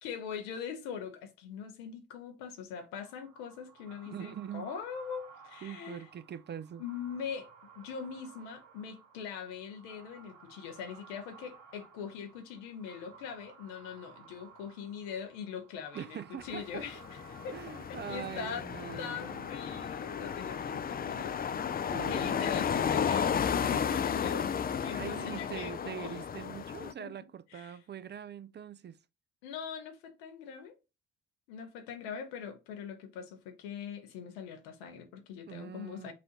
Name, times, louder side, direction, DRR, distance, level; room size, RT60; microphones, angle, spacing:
voice 1, 0.0-6.1 6.8-17.6 18.1-18.7 19.0-21.4 22.1-24.5 24.8-26.2 26.8-27.1 27.5-27.8 29.4-30.8 31.5-36.1, left 7 dB, 85° left, 0.8 m, -42 dB
sound 1, 3.0-21.9, right 6 dB, 70° right, 1.0 m, -56 dB
voice 2, 4.1-4.7 5.6-6.8 15.9-16.8 17.5-19.5 21.9-22.3 24.9-29.0 35.5-36.1, right 9 dB, 35° right, 0.4 m, -43 dB
sound 2, 16.5-26.9, left 7 dB, 30° left, 0.4 m, -33 dB
5.9 x 2.6 x 2.9 m
hypercardioid pair, 45°, 31 cm